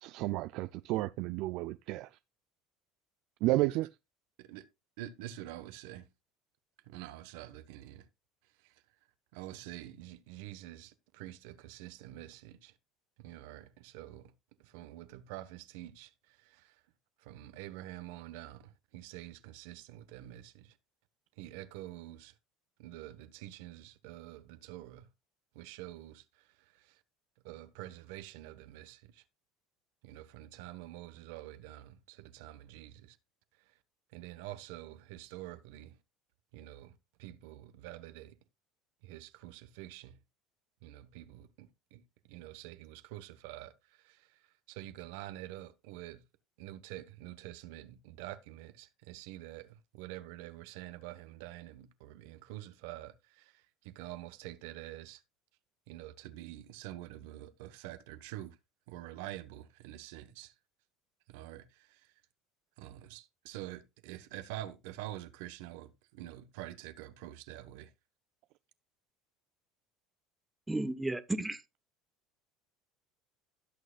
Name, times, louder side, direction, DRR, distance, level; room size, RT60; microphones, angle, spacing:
voice 1, 0.0-2.2 3.4-3.9, right 18 dB, 65° right, 0.4 m, -32 dB
voice 2, 5.0-6.1 6.9-8.1 9.3-12.7 13.2-14.3 14.6-16.1 16.4-16.7 17.2-20.7 21.4-22.3 22.8-25.1 25.5-26.2 27.4-29.2 30.0-33.2 34.1-36.0 36.5-36.9 37.2-38.4 39.0-40.2 40.8-42.0 42.3-43.7 44.0-44.3 44.7-46.2 46.6-53.5 53.8-55.2 55.9-58.6 58.9-60.5 61.3-62.0 62.8-67.9, right 14 dB, 80° right, 1.1 m, -47 dB
voice 3, 70.7-71.6, right 2 dB, 10° right, 0.9 m, -33 dB
16.5 x 6.5 x 2.4 m
supercardioid pair, 120°, 0 cm